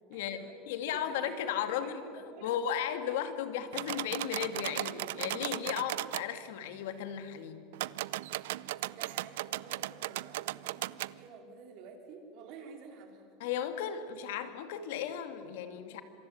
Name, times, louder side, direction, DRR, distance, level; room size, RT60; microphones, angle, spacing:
voice 1, 0.1-0.6 0.9-3.2 8.5-13.3 15.6-15.8, right 5 dB, 45° right, 4 dB, 4.3 m, -51 dB
voice 2, 0.7-2.0 2.4-7.6 13.4-16.0, left 9 dB, 75° left, 9 dB, 2.4 m, -35 dB
sound 1, 3.7-6.3 7.7-11.1, right 16 dB, 85° right, 0.6 m, -37 dB
26.5 x 23.5 x 9.5 m, 2.4 s
supercardioid pair, 175°, 0 cm